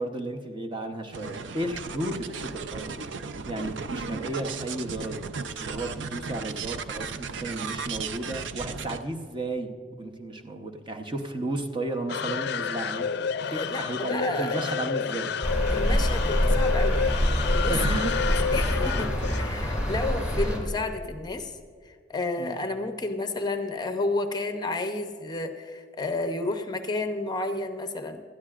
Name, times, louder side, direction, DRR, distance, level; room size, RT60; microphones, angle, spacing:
voice 1, 0.0-3.0 3.5-5.3 5.6-9.7 10.0-15.3 17.7-18.3 22.4-22.6, right 2 dB, 25° right, 4 dB, 0.9 m, -33 dB
sound 1, 1.1-9.0, right 5 dB, 75° right, 0.5 m, -36 dB
sound 2, 12.1-20.5, left 6 dB, 65° left, 0.4 m, -30 dB
voice 2, 13.4-14.7 15.7-17.8 18.2-21.5 22.1-28.2, left 2 dB, 25° left, 6 dB, 0.7 m, -31 dB
sound 3, 15.4-20.6, equal, 5° right, 2.5 m, -25 dB
19.5 x 13.0 x 2.5 m, 2.1 s
head